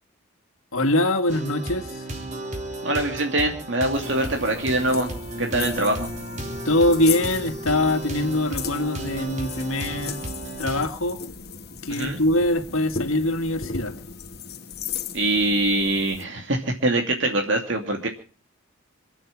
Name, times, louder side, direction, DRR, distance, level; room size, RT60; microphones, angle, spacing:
voice 1, 0.7-2.1 6.7-10.2 10.6-11.2 11.8-13.9, left 1 dB, 85° left, 7 dB, 2.1 m, -23 dB
sound 1, 1.3-10.9, right 1 dB, 35° right, 3.7 m, -34 dB
voice 2, 2.8-5.1 5.4-6.1 11.9-12.2 15.1-18.1, right 2 dB, 65° right, 3 dB, 2.6 m, -23 dB
sound 2, 3.9-16.2, left 6 dB, 50° left, 1.4 m, -36 dB
27.0 x 9.2 x 5.9 m, 0.37 s
head